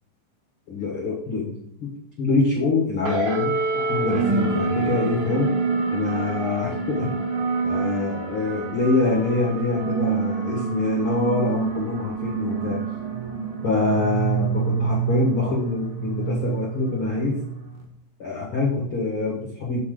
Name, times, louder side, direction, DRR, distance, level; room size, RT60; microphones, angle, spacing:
voice 1, 0.7-1.5 1.8-1.9 2.2-3.5 3.9-5.5 5.9-7.1 7.6-12.8 13.6-17.3 18.2-19.8, left 3 dB, 70° left, -4 dB, 1.2 m, -25 dB
sound 1, 3.0-17.8, right 4 dB, 60° right, 2.0 m, -27 dB
8.5 x 5.7 x 3.8 m, 0.79 s
omnidirectional pair, 5.3 m